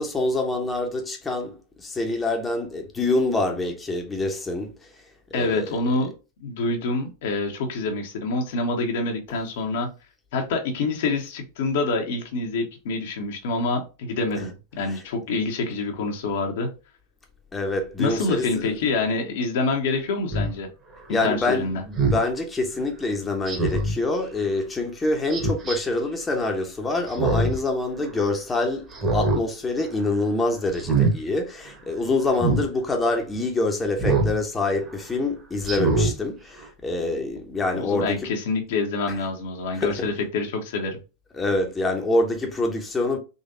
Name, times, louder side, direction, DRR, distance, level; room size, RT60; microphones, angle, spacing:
voice 1, 0.0-5.0 5.3-5.8 14.9-15.0 17.5-18.7 21.1-38.3 39.7-40.1 41.3-43.2, left 2 dB, 15° left, 0.9 m, -26 dB
voice 2, 5.3-6.1 6.4-9.9 10.3-16.7 18.0-20.7 21.1-21.8 37.7-41.0, left 3 dB, 55° left, 0.9 m, -26 dB
Speech synthesizer, 20.3-20.5 22.0-22.2 23.5-23.9 25.3-25.8 27.1-27.6 28.0-28.1 28.9-29.4 29.8-30.1 30.7-31.1 32.4-32.6 34.0-34.3 34.8-34.9 35.6-36.1 36.6-36.7, right 3 dB, 25° right, 1.3 m, -23 dB
3.9 x 3.3 x 2.6 m
figure-of-eight pair, 90°, 0 cm